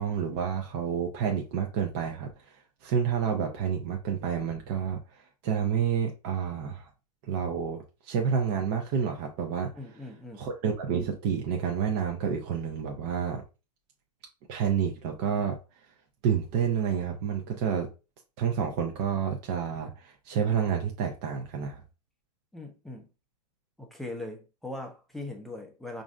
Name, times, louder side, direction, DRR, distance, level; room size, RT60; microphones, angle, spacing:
voice 1, 0.0-2.3 2.8-6.9 7.3-9.7 10.4-13.4 14.5-15.6 16.2-17.9 18.4-21.8, right 7 dB, 40° right, 0.7 m, -29 dB
voice 2, 9.7-10.5 22.5-23.1 23.8-26.0, left 2 dB, ahead, 0.7 m, -40 dB
4.9 x 2.6 x 2.4 m
hypercardioid pair, 115°, 21 cm